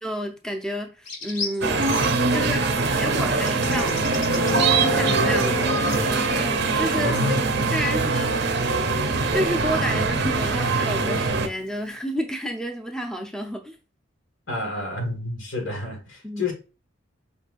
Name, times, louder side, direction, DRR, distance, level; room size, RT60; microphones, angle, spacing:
voice 1, 0.0-1.8 2.3-4.0 4.8-5.8 6.3-7.2 7.7-8.3 9.3-13.8 16.2-16.5, equal, 5° left, 0.5 m, -30 dB
sound 1, 1.1-2.1 3.5-4.5 5.9-6.1, left 4 dB, 40° left, 1.3 m, -34 dB
sound 2, 1.6-11.5, right 3 dB, 55° right, 0.5 m, -23 dB
Guitar, 4.3-10.6, right 1 dB, 60° left, 1.6 m, -31 dB
voice 2, 7.0-7.5 7.8-8.0 14.5-16.5, left 2 dB, 80° left, 1.8 m, -29 dB
5.2 x 3.2 x 2.4 m
head